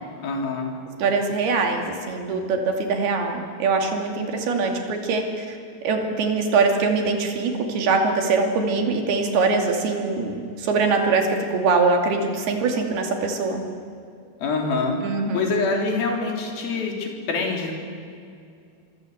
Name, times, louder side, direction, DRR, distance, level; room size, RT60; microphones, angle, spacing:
voice 1, 0.2-0.7 14.4-15.0 15.3-17.7, left 4 dB, 65° left, 1 dB, 5.2 m, -25 dB
voice 2, 1.0-5.6 5.8-13.6 15.0-15.5, right 4 dB, 75° right, 3 dB, 4.5 m, -23 dB
25.5 x 25.0 x 8.0 m, 2.4 s
omnidirectional pair, 4.6 m